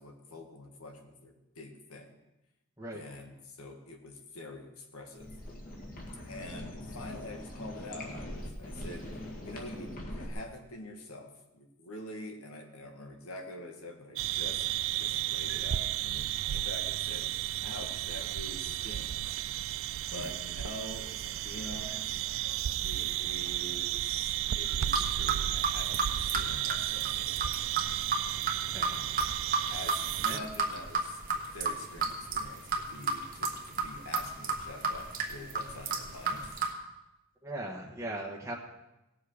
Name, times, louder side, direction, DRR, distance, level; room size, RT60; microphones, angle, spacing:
voice 1, 0.0-2.2 2.9-5.3 6.2-14.7 14.9-19.4 20.1-22.3 22.8-27.5 29.7-36.6, left 1 dB, 90° left, 3 dB, 1.8 m, -46 dB
sound 1, 5.1-10.3, left 1 dB, 40° left, 2.0 m, -42 dB
sound 2, 14.2-30.4, right 13 dB, 65° right, 0.4 m, -33 dB
sound 3, 24.7-36.7, right 4 dB, 40° right, 1.3 m, -33 dB
voice 2, 37.4-38.5, right 1 dB, 15° right, -3 dB, 1.2 m, -39 dB
18.0 x 7.2 x 4.9 m, 0.96 s
head